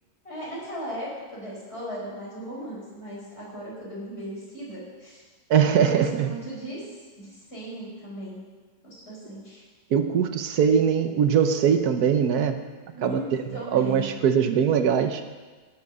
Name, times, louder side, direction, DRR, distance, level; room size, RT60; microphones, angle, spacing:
voice 1, 0.2-5.2 5.9-6.9 7.2-8.4 8.8-9.6 12.9-14.2, right 1 dB, 40° left, -6 dB, 5.3 m, -37 dB
voice 2, 5.5-6.3 9.9-12.6 13.0-13.2 13.5-15.2, right 7 dB, 80° right, 8 dB, 1.3 m, -21 dB
16.5 x 6.4 x 6.6 m, 1.4 s
omnidirectional pair, 1.6 m